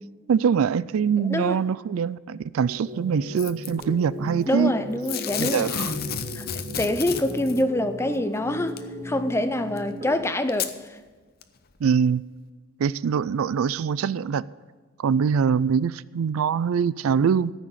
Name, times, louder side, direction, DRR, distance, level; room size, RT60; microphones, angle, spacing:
voice 1, 0.3-4.7 5.4-5.9 11.8-12.2 12.8-14.4 15.0-17.5, right 6 dB, 75° right, 0.3 m, -23 dB
voice 2, 1.2-1.6 4.5-5.7 6.3-6.5 6.8-8.8 9.0-11.0, left 1 dB, 10° left, 0.6 m, -25 dB
sound 1, 2.7-10.2, left 1 dB, 25° right, 0.9 m, -37 dB
Packing tape duct tape / Tearing, 3.4-3.8 5.0-7.6 8.8-8.9 9.8-9.9 10.5-10.7 11.4-11.5, left 7 dB, 45° left, 0.7 m, -31 dB
13.5 x 6.3 x 8.7 m
head